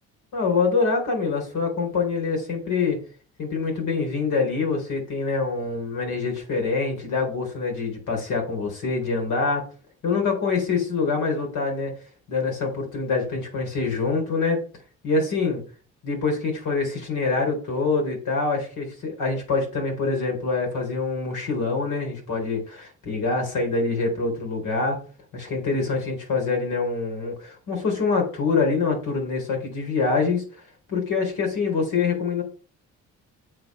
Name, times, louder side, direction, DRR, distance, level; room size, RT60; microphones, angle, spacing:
voice 1, 0.3-3.0 3.4-9.7 10.0-11.9 12.3-14.6 15.0-15.6 16.0-25.0 25.3-30.6 30.9-32.4, left 4 dB, 80° left, 2 dB, 4.1 m, -25 dB
7.6 x 4.3 x 7.0 m, 0.38 s
cardioid pair, 90°, 30 cm